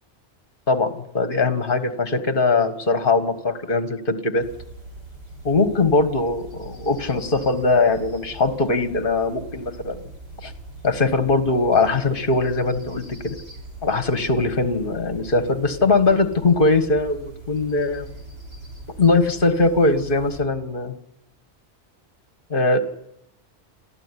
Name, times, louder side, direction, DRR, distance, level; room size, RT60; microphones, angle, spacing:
voice 1, 0.7-4.5 5.4-10.0 10.4-10.5 10.8-13.4 13.8-18.1 19.0-20.9 22.5-22.8, left 3 dB, 50° left, 9 dB, 1.8 m, -21 dB
sound 1, 4.4-20.4, right 2 dB, 70° right, 6.8 m, -41 dB
28.5 x 14.0 x 9.9 m, 0.87 s
omnidirectional pair, 1.2 m